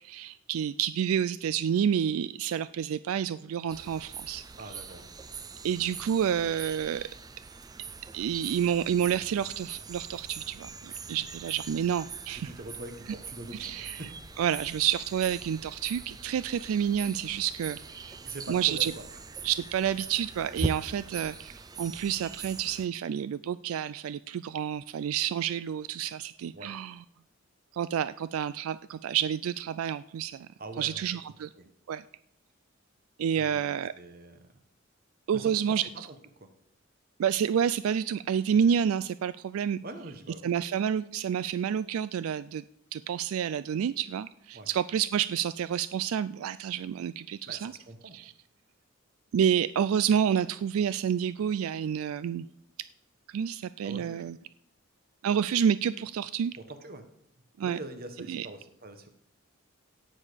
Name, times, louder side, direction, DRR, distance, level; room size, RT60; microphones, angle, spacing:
voice 1, 0.0-4.4 5.6-7.1 8.1-12.5 13.6-14.0 14.4-18.2 18.5-18.9 19.4-27.0 27.7-30.5 30.8-31.5 31.9-32.0 33.2-33.9 35.3-35.8 37.2-39.8 40.4-42.6 42.9-47.7 48.1-48.3 49.3-52.5 53.3-54.4 55.2-56.5 57.6-57.8 58.3-58.5, right 8 dB, 85° right, 16 dB, 0.3 m, -29 dB
sound 1, 3.7-22.9, right 4 dB, 20° right, 0.4 m, -42 dB
voice 2, 4.5-5.0 12.3-14.1 18.2-18.9 26.5-26.7 30.6-31.2 31.5-31.7 33.4-34.6 35.3-36.0 36.4-36.5 39.8-40.5 44.5-44.7 47.5-48.2 53.8-54.2 56.5-57.1 57.6-59.1, right 2 dB, 45° right, 8 dB, 1.2 m, -43 dB
17.0 x 6.5 x 5.1 m, 0.73 s
head